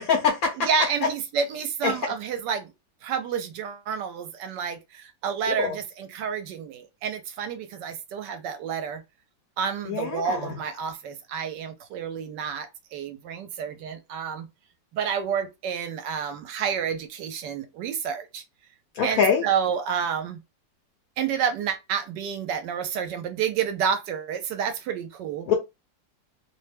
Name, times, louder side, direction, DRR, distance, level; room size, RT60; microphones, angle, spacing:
voice 1, 0.0-0.7 1.8-1.9 5.5-5.8 9.9-10.5 19.0-19.4 25.5-25.6, left 6 dB, 70° left, 0.8 m, -24 dB
voice 2, 0.5-2.7 3.0-9.0 9.6-14.5 14.9-18.4 19.0-20.4 21.2-25.5, right 7 dB, 75° right, 1.1 m, -29 dB
3.0 x 2.1 x 3.3 m
omnidirectional pair, 2.0 m